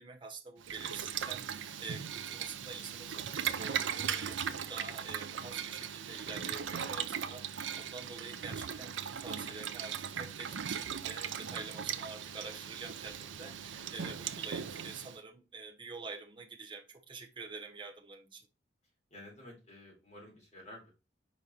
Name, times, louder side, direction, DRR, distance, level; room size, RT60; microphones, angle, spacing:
voice 1, 0.0-18.5, right 4 dB, 25° right, 0.9 m, -47 dB
Boiling, 0.6-15.2, right 8 dB, 85° right, 0.5 m, -38 dB
voice 2, 19.1-20.9, left 1 dB, 35° left, 3.8 m, -52 dB
5.2 x 4.8 x 4.3 m
head